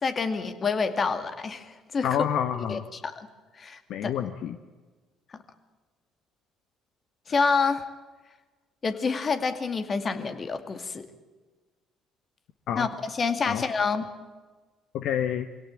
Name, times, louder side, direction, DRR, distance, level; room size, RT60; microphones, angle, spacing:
voice 1, 0.0-2.1 2.7-3.3 3.6-4.1 7.3-7.8 8.8-11.1 12.8-14.1, left 4 dB, 40° left, 9 dB, 2.3 m, -28 dB
voice 2, 2.0-2.9 3.9-4.6 12.7-12.9 13.5-13.6 14.9-15.5, left 9 dB, 65° left, 10 dB, 1.0 m, -28 dB
23.5 x 17.0 x 8.9 m, 1.3 s
hypercardioid pair, 60°, 0 cm